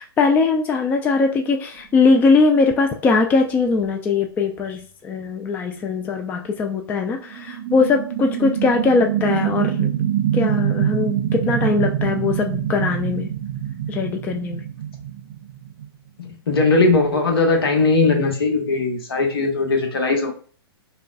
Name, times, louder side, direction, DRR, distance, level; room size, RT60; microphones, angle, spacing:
voice 1, 0.0-9.9 10.3-13.3 13.9-14.6, left 4 dB, 15° left, 0.3 m, -20 dB
sound 1, 1.8-1.9 7.1-15.9, right 10 dB, 45° right, 0.5 m, -25 dB
voice 2, 16.2-20.3, left 3 dB, 65° left, 1.1 m, -19 dB
5.1 x 2.2 x 2.4 m
figure-of-eight pair, 110°, 13 cm